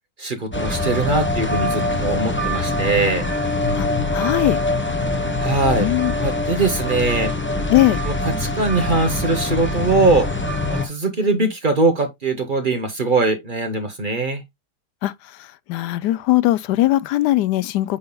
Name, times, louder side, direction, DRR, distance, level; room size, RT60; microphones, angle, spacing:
voice 1, 0.2-3.3 5.4-5.9 6.2-7.3 8.0-8.1 8.4-10.3 10.7-14.4, right 3 dB, 35° right, 1.0 m, -21 dB
sound 1, 0.5-10.9, left 2 dB, 10° left, 0.6 m, -23 dB
voice 2, 3.8-4.6 5.8-6.1 7.7-8.0 15.0-15.1 15.7-18.0, left 16 dB, 90° left, 1.2 m, -19 dB
8.6 x 5.5 x 2.2 m
omnidirectional pair, 1.7 m